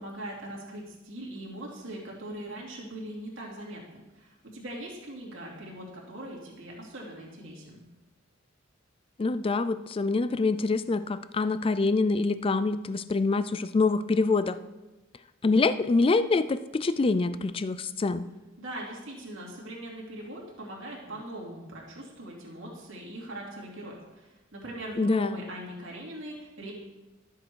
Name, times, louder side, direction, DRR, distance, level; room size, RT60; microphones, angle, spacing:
voice 1, 0.0-7.8 18.6-26.7, right 1 dB, 65° right, -3 dB, 2.9 m, -41 dB
voice 2, 9.2-14.6 15.4-18.3 25.0-25.4, left 3 dB, 25° left, 14 dB, 0.4 m, -25 dB
12.5 x 7.5 x 4.7 m, 1.1 s
head